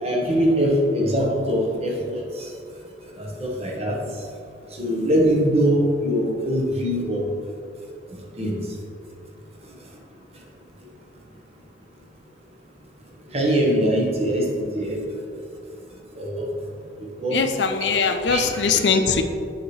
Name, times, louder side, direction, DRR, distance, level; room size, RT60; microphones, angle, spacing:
voice 1, 0.0-2.5 3.2-4.0 4.8-7.3 8.4-8.6 13.3-15.0 16.2-16.4 17.0-17.5 18.3-18.6 18.9-19.0, equal, 35° right, -2 dB, 1.2 m, -22 dB
voice 2, 17.3-19.2, left 5 dB, 80° left, 7 dB, 0.5 m, -21 dB
8.6 x 5.8 x 3.2 m, 2.4 s
head